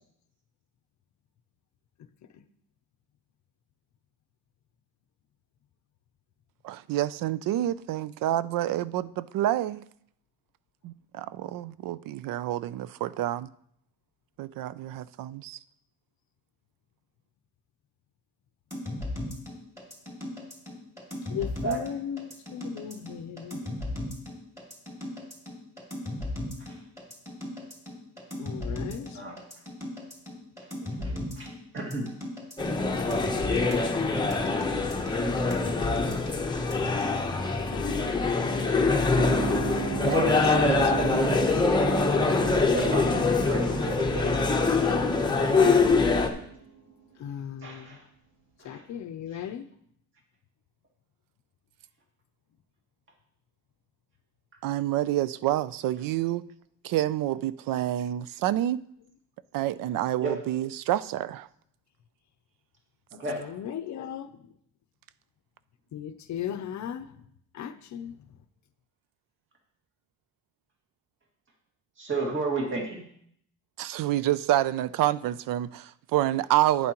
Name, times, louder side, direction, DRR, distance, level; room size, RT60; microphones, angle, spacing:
voice 1, 6.6-9.8 10.8-13.5 14.4-15.6 40.0-41.4 54.6-56.4 56.8-58.8 59.5-61.5 73.8-76.9, right 13 dB, 65° right, 0.5 m, -28 dB
sound 1, 18.7-37.2, left 1 dB, 10° right, 2.3 m, -36 dB
voice 2, 21.3-23.6 28.4-29.2 37.7-38.9 45.2-45.9 47.2-48.0 48.6-49.7 63.3-64.3 65.9-67.1 67.5-68.1, left 9 dB, 55° left, 0.6 m, -37 dB
voice 3, 31.0-32.1 40.7-40.9 42.7-44.4 47.6-48.0 48.6-48.8 49.3-49.4 60.2-60.3 63.2-63.4 72.0-73.0, right 3 dB, 35° right, 2.1 m, -32 dB
sound 2, 32.6-46.3, left 3 dB, 10° left, 0.8 m, -24 dB
sound 3, 39.2-47.3, right 5 dB, 85° right, 3.5 m, -37 dB
11.5 x 9.7 x 3.0 m
cardioid pair, 160°, 36 cm